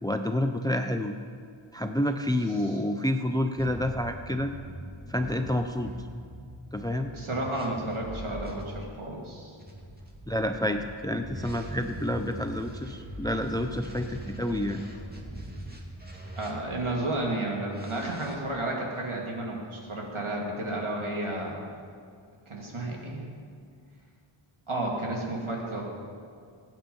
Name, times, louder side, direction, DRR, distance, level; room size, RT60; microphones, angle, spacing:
voice 1, 0.0-1.1 1.7-4.5 5.1-5.9 6.7-7.1 10.3-14.8, left 1 dB, 10° left, 6 dB, 0.7 m, -29 dB
sound 1, 3.6-8.6 9.6-17.0 17.7-18.3, right 1 dB, 20° right, 2.4 m, -42 dB
voice 2, 7.1-9.6 16.3-21.6 22.5-23.2 24.7-25.9, right 1 dB, 75° right, -2 dB, 2.8 m, -32 dB
22.5 x 9.2 x 5.6 m, 2.2 s
wide cardioid pair, 55°, 50 cm